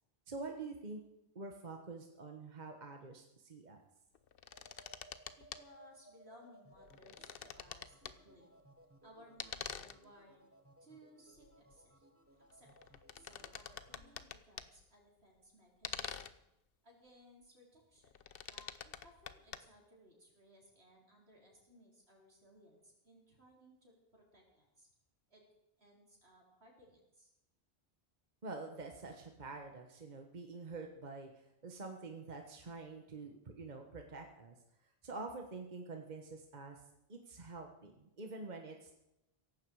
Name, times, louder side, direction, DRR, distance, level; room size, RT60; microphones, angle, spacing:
voice 1, 0.3-1.0 1.3-3.8 28.4-34.6 35.0-36.8 37.1-38.9, right 3 dB, 45° right, 3 dB, 1.4 m, -47 dB
sound 1, 4.1-5.6 6.7-8.2 9.4-10.0 11.4-11.8 12.5-14.8 15.8-16.3 18.0-19.6, left 8 dB, 65° left, 0.9 m, -47 dB
sound 2, 4.4-14.2, right 1 dB, 15° right, 1.3 m, -63 dB
voice 2, 5.3-8.5 9.0-10.5 10.8-12.1 12.3-16.4 16.8-18.1 18.5-24.9 25.3-25.4 25.8-27.3, equal, 80° right, -2 dB, 4.8 m, -62 dB
17.0 x 15.0 x 4.8 m, 0.87 s
omnidirectional pair, 1.1 m